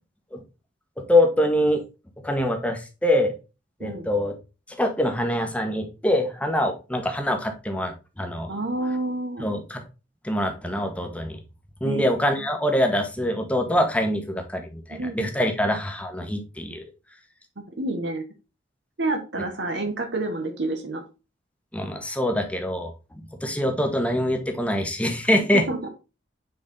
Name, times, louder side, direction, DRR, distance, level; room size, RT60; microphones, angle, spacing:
voice 1, 1.0-1.8 2.2-3.3 3.8-4.3 4.8-8.5 9.4-9.8 10.2-11.4 11.8-16.8 21.7-22.9 23.4-25.7, left 1 dB, 5° left, 4 dB, 1.1 m, -24 dB
voice 2, 8.5-9.5 11.8-12.5 14.9-15.3 17.6-18.2 19.0-21.0 25.4-25.9, right 2 dB, 75° right, 5 dB, 1.1 m, -29 dB
6.7 x 4.6 x 3.7 m, 0.30 s
head